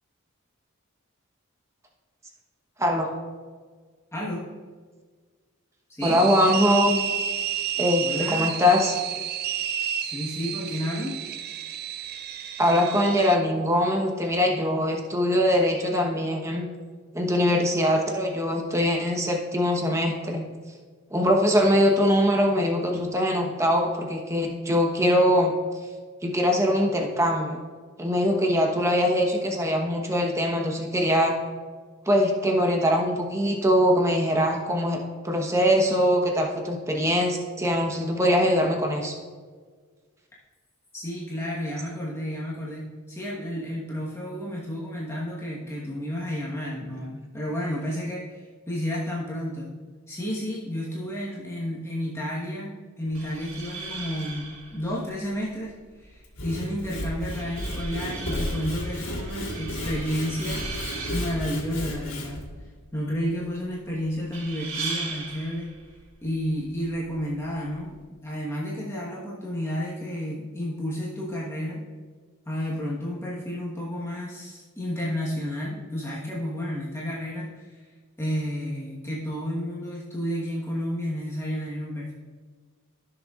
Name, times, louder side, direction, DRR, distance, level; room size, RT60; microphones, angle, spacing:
voice 1, 4.1-4.5 5.9-6.2 8.0-8.5 10.0-11.2 40.9-49.7 50.1-60.7 61.1-62.4 62.9-65.7 66.2-71.8 72.5-77.9 78.2-82.1, equal, 10° left, -6 dB, 1.2 m, -31 dB
voice 2, 6.0-7.0 7.8-8.0 8.3-8.9 12.6-16.7 17.1-20.5 21.1-25.5 26.2-27.6 28.0-31.3 32.1-35.0 35.2-39.1, equal, 15° right, 1 dB, 1.0 m, -22 dB
sound 1, 6.0-13.4, right 9 dB, 45° right, 0.4 m, -31 dB
sound 2, 53.0-68.0, right 4 dB, 70° right, 1.6 m, -40 dB
Sawing / Wood, 56.2-62.4, left 1 dB, 80° left, 2.3 m, -33 dB
15.0 x 6.6 x 2.4 m, 1.5 s
head